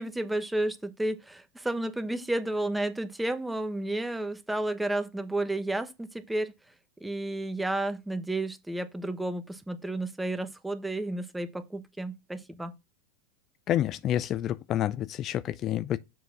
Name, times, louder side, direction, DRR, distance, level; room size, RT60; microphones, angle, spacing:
voice 1, 0.0-6.5 7.0-12.7, right 1 dB, 5° right, 1.0 m, -32 dB
voice 2, 13.7-16.0, left 12 dB, 40° left, 0.4 m, -28 dB
7.4 x 3.9 x 6.1 m
hypercardioid pair, 95°, 0 cm